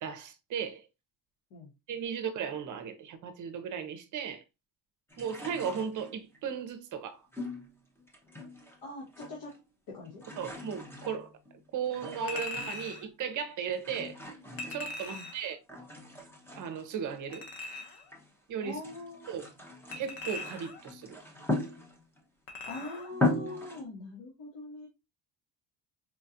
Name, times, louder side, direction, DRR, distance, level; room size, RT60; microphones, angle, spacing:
voice 1, 0.0-0.9 1.9-4.4 5.2-7.2 10.4-11.3 11.7-14.2 14.6-15.6 16.6-17.5 18.5-18.8 19.3-19.5 20.0-21.2, right 7 dB, 45° right, 0.6 m, -36 dB
sound 1, 5.1-6.4 7.3-8.8 9.0-9.7 10.0-13.1 13.7-15.3 15.7-18.3 18.7-22.2 22.7-22.8 23.1-23.8, left 2 dB, 5° left, 0.5 m, -38 dB
voice 2, 8.8-9.6 9.9-10.2 15.1-15.3 18.6-19.4 22.6-24.9, left 2 dB, 65° left, 1.4 m, -42 dB
Chink clink, 12.3-13.1 14.6-15.5 17.3-18.1 19.9-20.9 22.5-23.1 23.5-23.6, left 2 dB, 90° left, 1.1 m, -40 dB
4.4 x 2.3 x 2.6 m
cardioid pair, 170°, 45 cm